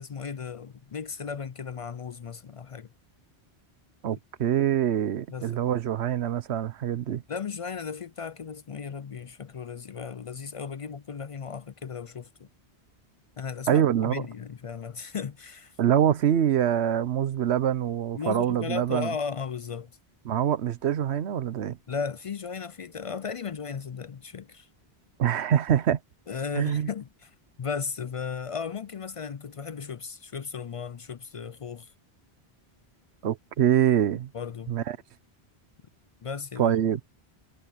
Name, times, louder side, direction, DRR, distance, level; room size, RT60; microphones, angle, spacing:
voice 1, 0.0-2.9 5.3-5.7 7.3-12.5 13.4-15.8 18.1-19.9 21.9-24.7 26.3-27.3 27.6-31.9 34.3-34.7 36.2-36.7, left 6 dB, 50° left, 0.4 m, -36 dB
voice 2, 4.0-7.2 13.7-14.2 15.8-19.1 20.2-21.8 25.2-26.0 26.6-26.9 33.2-34.3 34.7-35.0 36.6-37.0, right 10 dB, 85° right, 1.1 m, -25 dB
omnidirectional pair, 1.1 m